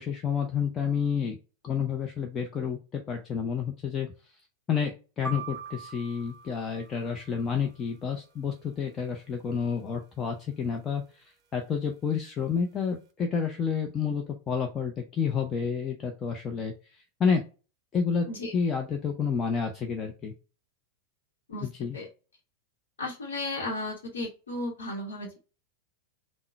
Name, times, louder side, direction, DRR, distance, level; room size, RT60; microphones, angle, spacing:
voice 1, 0.0-1.4 1.6-4.1 4.7-4.9 5.2-17.4 17.9-18.3 18.5-20.3 21.6-22.0, left 6 dB, 25° left, 3 dB, 0.5 m, -30 dB
sound 1, 5.2-7.4, right 4 dB, 25° right, 0.8 m, -41 dB
voice 2, 23.0-25.4, left 2 dB, 70° left, -1 dB, 0.8 m, -34 dB
3.7 x 2.0 x 4.4 m, 0.33 s
figure-of-eight pair, 90°, 0 cm